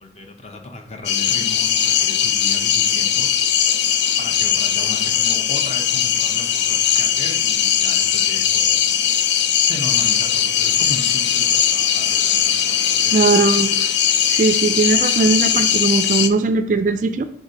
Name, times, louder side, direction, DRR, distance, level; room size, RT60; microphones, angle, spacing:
voice 1, 0.0-3.3 4.2-8.7 9.6-13.5, left 2 dB, 35° left, 4 dB, 0.7 m, -36 dB
sound 1, 1.0-16.3, left 9 dB, 65° left, 0.4 m, -19 dB
voice 2, 13.1-13.7 14.3-17.2, right 4 dB, 45° right, 10 dB, 0.3 m, -19 dB
9.6 x 3.7 x 2.8 m, 0.70 s
head